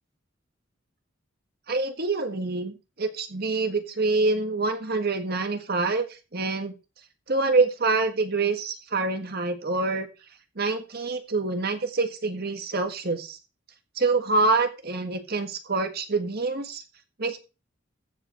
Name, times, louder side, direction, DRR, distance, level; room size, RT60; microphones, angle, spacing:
voice 1, 1.7-6.0 6.3-6.7 7.3-10.1 10.5-13.4 13.9-16.8 17.2-17.4, right 3 dB, 55° right, 7 dB, 1.6 m, -26 dB
15.0 x 5.1 x 4.4 m, 0.30 s
head